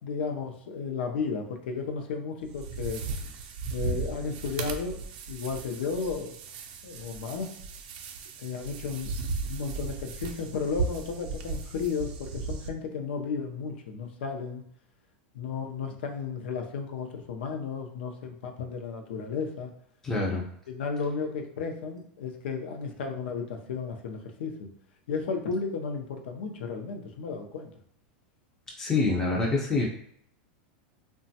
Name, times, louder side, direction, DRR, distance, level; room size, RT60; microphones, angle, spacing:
voice 1, 0.0-3.0 3.7-5.0 5.3-6.3 6.8-7.5 8.4-9.1 9.4-14.6 15.3-19.7 20.7-24.7 25.1-27.7, left 5 dB, 80° left, 4 dB, 0.5 m, -33 dB
sound 1, 2.4-12.7, right 4 dB, 60° right, 0.4 m, -36 dB
voice 2, 20.0-20.5 28.8-29.9, left 3 dB, 10° left, -3 dB, 0.4 m, -26 dB
3.0 x 2.2 x 2.7 m, 0.69 s
supercardioid pair, 150°, 6 cm